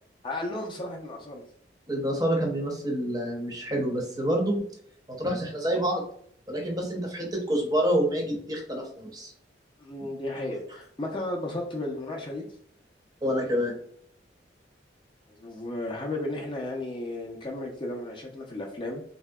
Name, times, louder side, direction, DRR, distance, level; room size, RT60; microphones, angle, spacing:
voice 1, 0.2-1.4 9.8-12.5 15.3-19.0, left 1 dB, 25° left, 0 dB, 0.4 m, -34 dB
voice 2, 1.9-4.6 5.1-6.0 6.5-9.3 13.2-13.7, equal, 20° right, 0 dB, 0.6 m, -27 dB
3.2 x 2.7 x 2.2 m, 0.63 s
head